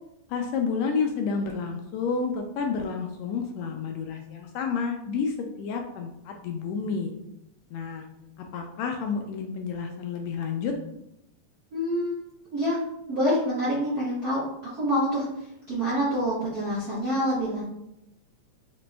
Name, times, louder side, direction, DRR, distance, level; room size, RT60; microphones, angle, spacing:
voice 1, 0.3-7.1 7.7-8.0 8.4-10.7, left 5 dB, 80° left, 3 dB, 1.7 m, -30 dB
voice 2, 11.7-12.2 12.5-12.8 13.1-14.4 14.7-17.6, equal, 55° right, -9 dB, 1.0 m, -26 dB
5.1 x 2.9 x 3.3 m, 0.84 s
omnidirectional pair, 3.3 m